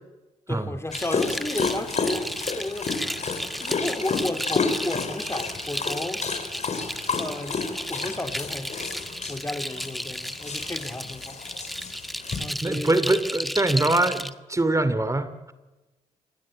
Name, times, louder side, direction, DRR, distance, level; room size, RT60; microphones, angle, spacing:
voice 1, 0.5-2.9 3.5-6.2 7.2-7.6 7.9-9.0 9.3-11.4 12.4-13.0, left 2 dB, 15° left, 8 dB, 2.9 m, -33 dB
Dog, 0.9-12.5, left 4 dB, 50° left, 6.1 m, -31 dB
sound 1, 0.9-14.3, equal, ahead, 1.7 m, -34 dB
voice 2, 12.6-15.5, right 2 dB, 20° right, 13 dB, 2.7 m, -23 dB
27.5 x 21.5 x 8.7 m, 1.1 s
supercardioid pair, 60°, 15 cm